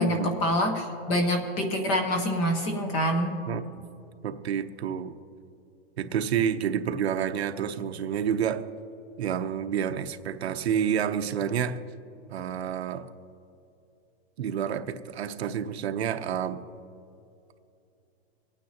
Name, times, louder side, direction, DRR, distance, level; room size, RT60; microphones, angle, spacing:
voice 1, 0.0-3.4, equal, 20° left, 4 dB, 0.9 m, -26 dB
voice 2, 3.5-3.9 4.2-5.2 6.0-8.6 9.2-11.8 12.3-13.1 14.4-16.6, right 8 dB, 70° right, 9 dB, 0.9 m, -29 dB
26.5 x 9.1 x 2.8 m, 2.7 s
supercardioid pair, 175°, 33 cm